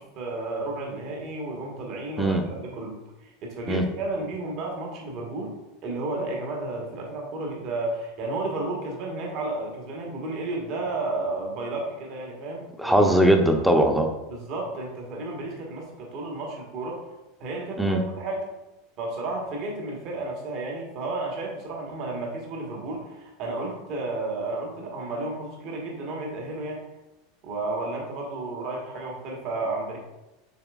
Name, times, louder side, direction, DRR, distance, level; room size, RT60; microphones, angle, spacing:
voice 1, 0.0-5.5 5.8-13.1 14.3-17.0 17.4-18.4 19.0-26.9 27.4-30.0, right 2 dB, 55° right, -1 dB, 1.3 m, -32 dB
voice 2, 12.8-14.1 17.8-18.0, right 1 dB, ahead, 4 dB, 0.6 m, -20 dB
6.8 x 3.3 x 2.4 m, 1.0 s
hypercardioid pair, 105°, 0 cm